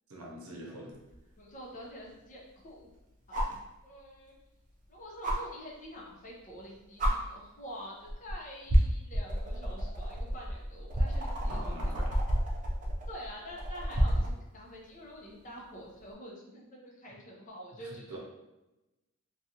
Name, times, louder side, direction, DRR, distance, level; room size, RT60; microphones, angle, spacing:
voice 1, 0.1-1.0 11.4-12.2 17.8-18.2, right 1 dB, 85° right, -1 dB, 0.7 m, -44 dB
sound 1, 1.1-1.2 3.3-3.6 5.2-5.4 6.5-6.6 7.0-7.1 8.1-8.3 8.7-14.4 16.0-16.1, equal, 35° right, 0.5 m, -29 dB
voice 2, 1.4-2.9 3.3-3.5 3.8-4.3 4.9-11.6 13.1-18.2, equal, 35° left, -3 dB, 0.6 m, -47 dB
2.5 x 2.3 x 2.8 m, 0.98 s
head